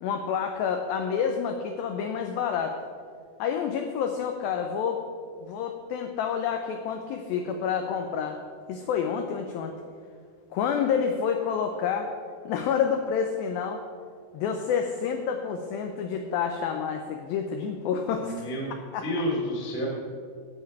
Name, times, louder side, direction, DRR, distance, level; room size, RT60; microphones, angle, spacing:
voice 1, 0.0-2.8 3.4-5.0 5.4-8.4 8.7-9.7 10.5-12.1 12.5-13.8 14.3-18.4 18.9-19.0, left 7 dB, 90° left, 5 dB, 2.0 m, -28 dB
voice 2, 18.1-18.7 19.0-19.9, left 1 dB, 10° left, -4 dB, 0.6 m, -30 dB
11.5 x 7.8 x 4.7 m, 2.2 s
omnidirectional pair, 4.9 m